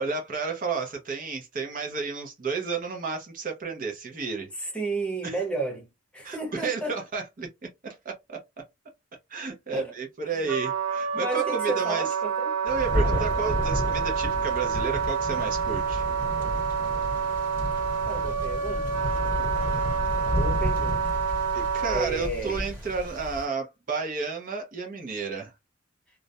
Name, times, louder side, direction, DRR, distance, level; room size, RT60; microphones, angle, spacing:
voice 1, 0.0-4.5 5.2-5.4 6.2-8.4 9.3-12.1 12.6-16.0 21.5-25.5, right 5 dB, 45° right, 0.6 m, -32 dB
voice 2, 4.6-5.9 6.1-6.9 9.7-9.9 10.3-10.4 11.1-12.5 18.1-19.0 20.3-21.2 21.9-22.6, right 2 dB, 5° left, 0.8 m, -32 dB
Wind instrument woodwind instrument, 10.5-22.1, right 6 dB, 90° right, 0.6 m, -28 dB
Thunder, 12.7-23.4, equal, 10° right, 1.3 m, -31 dB
2.4 x 2.0 x 2.6 m
head